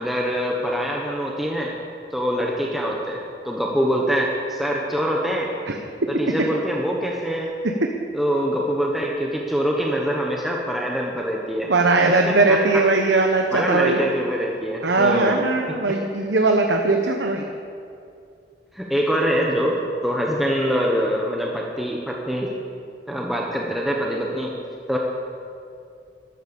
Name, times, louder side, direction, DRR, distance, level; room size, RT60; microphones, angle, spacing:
voice 1, 0.0-1.7 2.1-3.2 3.4-5.5 6.1-7.5 8.1-11.7 12.0-12.8 13.5-15.4 15.9-16.0 18.7-22.5 23.1-24.5 24.9-25.0, equal, ahead, -2 dB, 1.1 m, -24 dB
voice 2, 11.7-14.0 14.8-17.5, right 3 dB, 80° right, 3 dB, 1.1 m, -19 dB
13.0 x 12.5 x 6.9 m, 2.4 s
head